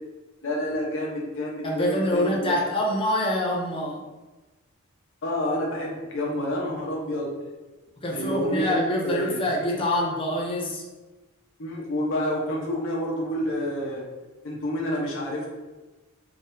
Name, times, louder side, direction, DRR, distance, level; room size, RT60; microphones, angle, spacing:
voice 1, 0.4-2.5 5.2-7.3 8.1-8.7 9.0-9.4 11.6-14.0 14.4-15.5, equal, 65° left, -3 dB, 1.0 m, -28 dB
voice 2, 1.6-4.0 8.0-10.8, left 1 dB, 25° left, -2 dB, 0.6 m, -25 dB
3.6 x 3.4 x 2.6 m, 1.2 s
head